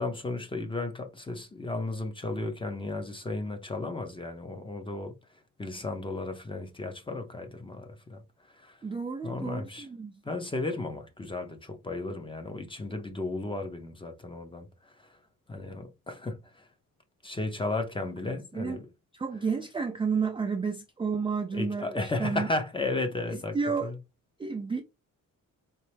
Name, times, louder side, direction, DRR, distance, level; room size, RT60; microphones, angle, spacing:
voice 1, 0.0-5.1 5.6-8.2 8.5-8.8 9.2-9.9 10.2-15.2 15.5-16.7 17.2-18.9 21.5-24.0, left 2 dB, 15° left, 0.7 m, -34 dB
voice 2, 8.8-10.1 18.5-18.8 19.1-22.5 23.5-23.9 24.4-24.8, right 5 dB, 15° right, 0.3 m, -31 dB
4.5 x 3.1 x 3.3 m
wide cardioid pair, 160°, 32 cm